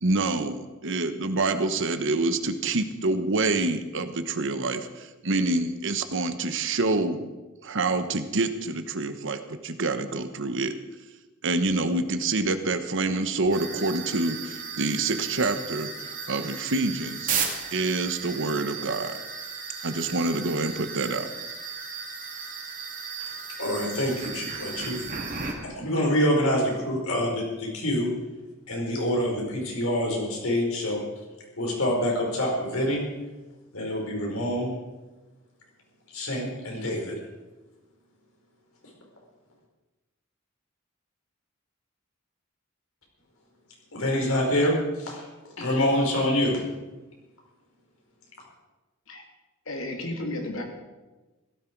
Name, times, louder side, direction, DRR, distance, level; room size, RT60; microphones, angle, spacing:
voice 1, 0.0-7.3 7.6-10.7 11.4-17.3 17.7-19.2 19.8-21.3, right 3 dB, 65° right, 9 dB, 1.1 m, -27 dB
sound 1, 13.5-25.5, right 5 dB, 40° right, 2.4 m, -35 dB
voice 2, 23.6-25.0 25.6-28.1 28.7-31.0 31.6-33.0 33.7-34.7 36.1-37.1 43.9-45.2 45.6-46.6, left 1 dB, 90° left, -1 dB, 4.9 m, -26 dB
voice 3, 49.7-50.6, left 1 dB, 70° left, 2 dB, 2.7 m, -33 dB
16.5 x 14.0 x 4.7 m, 1.2 s
head